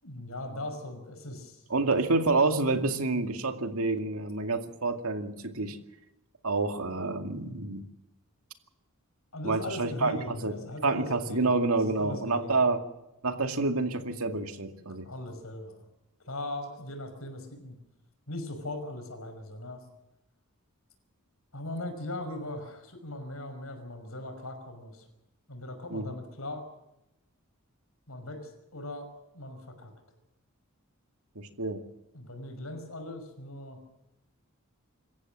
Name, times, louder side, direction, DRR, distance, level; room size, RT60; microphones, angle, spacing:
voice 1, 0.0-1.6 9.3-12.6 15.0-15.8 16.2-17.7 18.3-19.8 21.5-25.0 25.5-26.7 28.1-29.1 29.3-29.9 32.1-33.8, left 1 dB, 75° left, 6 dB, 5.8 m, -39 dB
voice 2, 1.7-5.8 6.4-7.8 9.4-10.5 10.8-12.8 13.2-15.1 25.9-26.1 31.4-31.8, right 3 dB, 75° right, 6 dB, 2.2 m, -28 dB
26.5 x 15.0 x 7.5 m, 0.90 s
head